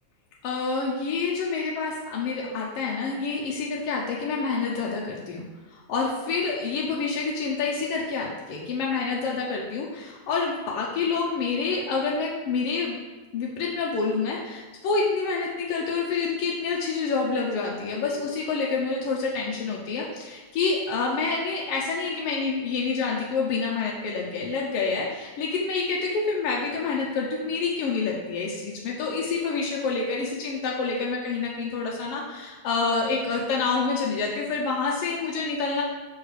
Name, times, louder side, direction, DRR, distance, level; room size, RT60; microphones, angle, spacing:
voice 1, 0.4-5.4 5.7-13.0 13.3-35.8, left 4 dB, 75° left, -2 dB, 1.5 m, -27 dB
6.4 x 4.6 x 4.8 m, 1.2 s
omnidirectional pair, 3.3 m